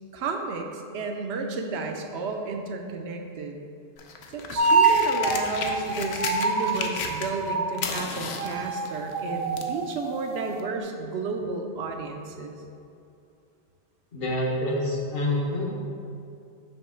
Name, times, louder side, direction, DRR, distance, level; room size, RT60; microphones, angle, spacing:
voice 1, 0.1-3.6 4.3-12.5, right 3 dB, 90° right, 4 dB, 0.9 m, -32 dB
sound 1, 4.0-7.5 7.7-9.8 10.6-10.7, left 5 dB, 85° left, 0.8 m, -34 dB
sound 2, 4.6-8.1 8.3-10.8, right 3 dB, 55° right, 0.5 m, -26 dB
voice 2, 14.1-15.6, left 1 dB, 65° left, -2 dB, 1.2 m, -27 dB
5.6 x 3.0 x 5.5 m, 2.6 s
omnidirectional pair, 1.0 m